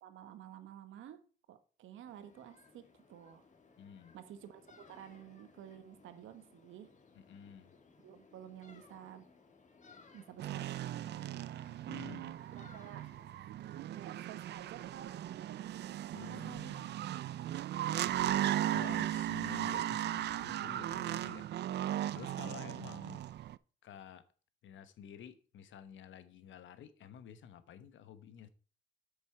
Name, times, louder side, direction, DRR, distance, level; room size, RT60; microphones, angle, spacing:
voice 1, 0.0-3.5 4.1-6.9 8.0-9.2 10.1-11.5 12.5-13.1 13.9-15.6 16.3-16.8 22.4-22.8, right 10 dB, 80° right, 1.2 m, -52 dB
sound 1, 2.1-13.4, left 4 dB, 40° left, 1.9 m, -62 dB
voice 2, 3.8-4.2 7.1-7.7 11.9-12.3 16.1-16.9 18.3-21.5 22.1-23.2 23.8-24.3 24.6-28.5, left 9 dB, 75° left, 1.1 m, -51 dB
sound 2, 10.4-23.6, right 12 dB, 60° right, 0.4 m, -37 dB
8.4 x 7.0 x 4.5 m
cardioid pair, 90°, 20 cm